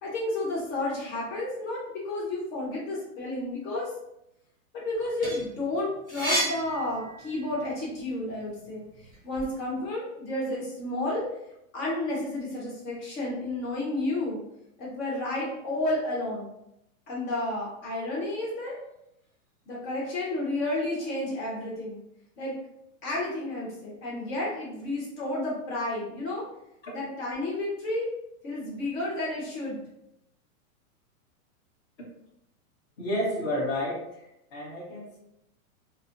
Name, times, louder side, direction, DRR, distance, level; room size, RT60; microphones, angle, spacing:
voice 1, 0.0-3.9 4.7-8.8 9.2-11.3 11.7-14.4 14.8-16.5 17.1-18.7 19.7-22.0 22.4-22.5 23.0-26.4 26.9-28.1 28.4-29.8, left 2 dB, 65° left, -5 dB, 1.2 m, -31 dB
sound 1, 4.9-7.6 8.1-9.5, right 1 dB, 10° left, 0.5 m, -32 dB
voice 2, 33.0-34.2 34.5-35.2, left 1 dB, 45° left, -6 dB, 1.2 m, -31 dB
3.2 x 2.0 x 2.5 m, 0.82 s
hypercardioid pair, 155°, 43 cm